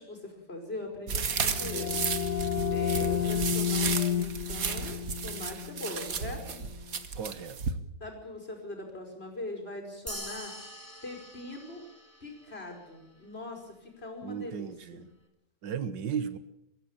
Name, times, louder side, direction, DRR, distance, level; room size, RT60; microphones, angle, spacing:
voice 1, 0.0-2.0 2.7-6.6 8.0-10.5 11.0-11.8 12.2-15.0, left 2 dB, 35° left, 2 dB, 5.4 m, -41 dB
sound 1, 1.1-6.7, left 9 dB, 65° left, 1.5 m, -32 dB
sound 2, 1.1-7.7, right 6 dB, 55° right, 1.7 m, -33 dB
voice 2, 7.2-7.8 14.2-15.1 15.6-16.4, right 7 dB, 80° right, 13 dB, 1.8 m, -35 dB
sound 3, 10.1-12.8, equal, 10° right, 3.3 m, -44 dB
24.5 x 14.5 x 8.8 m, 0.83 s
omnidirectional pair, 1.9 m